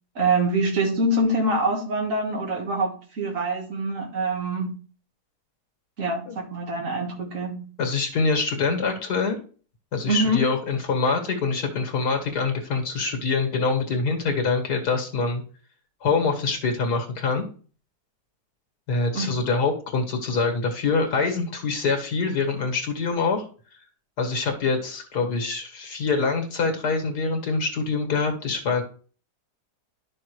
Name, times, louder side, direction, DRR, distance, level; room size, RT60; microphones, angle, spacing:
voice 1, 0.2-4.8 6.0-7.7 10.1-10.4 19.1-19.4, right 2 dB, 55° right, 1.9 m, -25 dB
voice 2, 7.8-9.4 9.9-15.4 16.0-17.4 18.9-23.4 24.2-28.8, left 4 dB, 85° left, 2.2 m, -25 dB
11.0 x 6.2 x 3.1 m
omnidirectional pair, 1.7 m